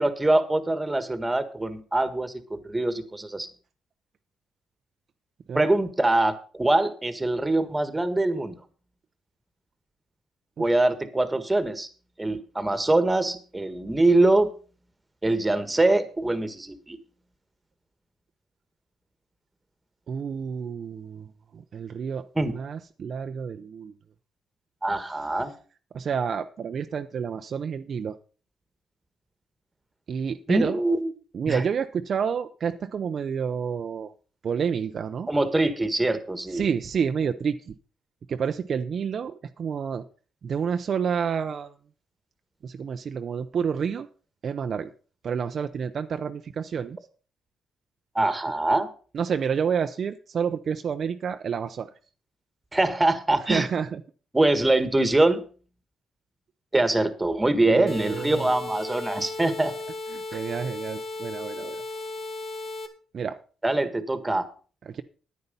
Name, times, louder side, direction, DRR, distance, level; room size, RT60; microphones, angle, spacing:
voice 1, 0.0-3.5 5.5-8.6 10.6-11.9 12.2-14.5 15.2-17.0 22.4-22.5 24.8-25.5 30.5-31.1 31.5-31.6 35.3-36.7 48.2-48.9 52.7-53.7 54.3-55.4 56.7-59.7 63.6-64.5, right 2 dB, 15° right, 11 dB, 1.6 m, -23 dB
voice 2, 20.1-21.3 21.5-23.9 25.9-28.1 30.1-30.8 31.3-34.1 34.4-35.3 36.5-37.7 38.3-40.0 40.4-41.7 42.6-44.1 44.4-44.9 45.2-47.0 49.1-51.9 53.5-54.0 57.7-58.5 60.1-61.8 63.1-63.4 64.9-65.0, right 7 dB, 55° right, 7 dB, 0.7 m, -29 dB
sound 1, 57.9-62.9, left 2 dB, 55° left, 2.0 m, -35 dB
9.7 x 9.5 x 5.4 m, 0.39 s
cardioid pair, 90°, 0 cm